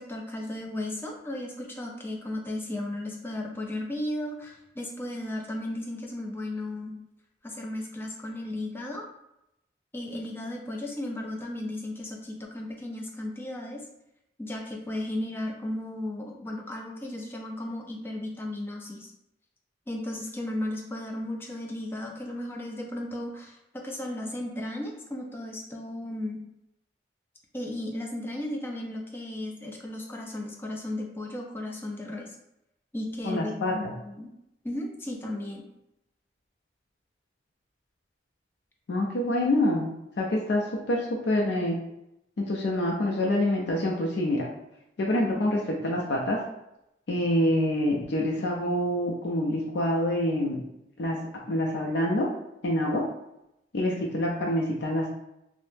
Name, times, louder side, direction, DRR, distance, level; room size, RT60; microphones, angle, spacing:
voice 1, 0.0-6.9 7.4-9.0 9.9-13.8 14.4-19.1 19.9-26.4 27.5-32.4 32.9-34.3 34.6-35.6, left 1 dB, 10° left, 0 dB, 0.4 m, -35 dB
voice 2, 33.2-33.7 38.9-39.9 40.2-41.8 42.4-44.5 45.0-46.4 47.1-50.6 51.0-51.2 51.5-52.3 52.6-53.0 53.7-55.1, left 1 dB, 75° left, -2 dB, 0.4 m, -26 dB
2.6 x 2.0 x 3.3 m, 0.84 s
head